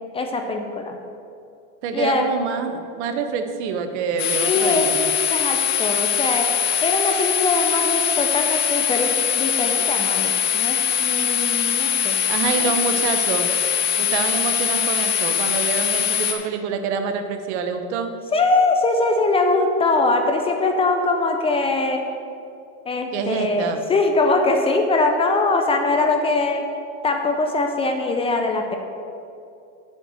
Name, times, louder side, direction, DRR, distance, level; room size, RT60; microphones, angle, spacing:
voice 1, 0.1-1.0 1.9-2.3 4.3-4.9 5.3-6.5 6.8-12.2 12.6-12.7 18.3-22.0 22.9-26.6 27.0-28.8, left 3 dB, 15° left, 4 dB, 0.5 m, -22 dB
voice 2, 1.8-5.1 12.3-13.5 14.0-18.1 23.1-23.8, right 6 dB, 70° right, 7 dB, 1.0 m, -26 dB
sound 1, 4.2-16.3, left 9 dB, 85° left, 1.1 m, -22 dB
7.3 x 5.6 x 7.5 m, 2.5 s
supercardioid pair, 145°, 36 cm